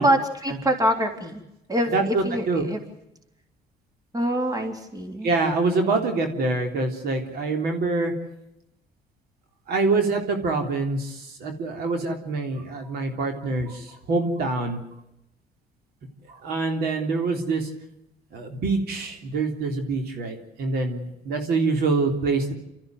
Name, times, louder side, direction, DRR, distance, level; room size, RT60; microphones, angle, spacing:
voice 1, 0.0-1.4 1.7-2.8 4.1-5.3, right 1 dB, 20° right, 5 dB, 3.4 m, -25 dB
voice 2, 1.9-2.6 5.2-8.1 9.7-11.1 11.4-13.8 14.1-14.8 16.4-17.6 18.3-22.5, right 3 dB, 70° right, 4 dB, 3.5 m, -25 dB
28.0 x 14.0 x 7.9 m, 0.85 s
cardioid pair, 110°, 17 cm